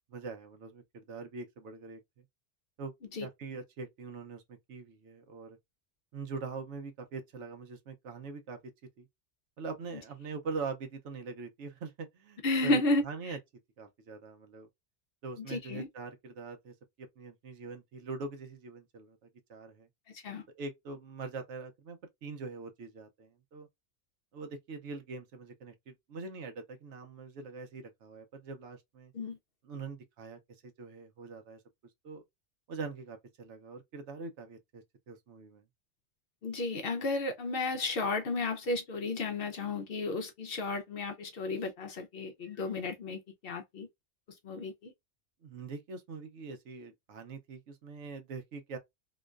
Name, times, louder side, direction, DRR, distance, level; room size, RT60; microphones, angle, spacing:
voice 1, 0.1-2.0 2.8-2.9 3.2-5.6 6.1-8.7 9.0-9.1 9.6-13.4 13.8-14.7 15.2-19.9 20.6-23.7 24.3-29.1 29.6-31.6 32.0-32.2 32.7-35.6 45.4-48.8, right 4 dB, 75° right, 1.0 m, -43 dB
voice 2, 12.4-13.4 15.4-15.9 20.1-20.4 29.1-29.4 36.4-43.9 44.4-44.9, left 2 dB, 60° left, 0.7 m, -33 dB
2.9 x 2.2 x 2.3 m
omnidirectional pair, 1.2 m